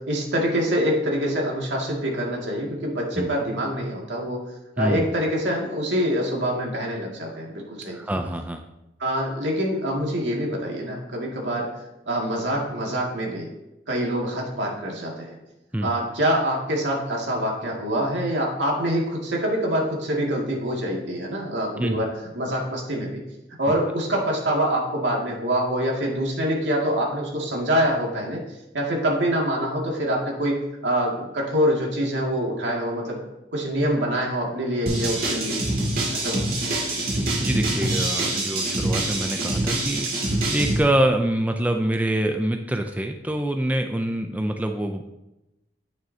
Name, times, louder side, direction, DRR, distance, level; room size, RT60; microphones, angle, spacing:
voice 1, 0.0-4.4 4.8-8.0 9.0-11.8 12.1-13.5 13.9-15.4 15.8-23.2 23.6-28.4 28.7-33.2 33.5-35.7 36.1-36.4, equal, 80° right, -2 dB, 2.2 m, -25 dB
voice 2, 7.9-8.7 15.7-15.9 21.8-22.0 37.4-45.0, right 1 dB, 10° right, 5 dB, 0.4 m, -25 dB
sound 1, 34.9-40.8, right 2 dB, 50° right, 2.3 m, -25 dB
9.3 x 9.0 x 2.8 m, 0.94 s
head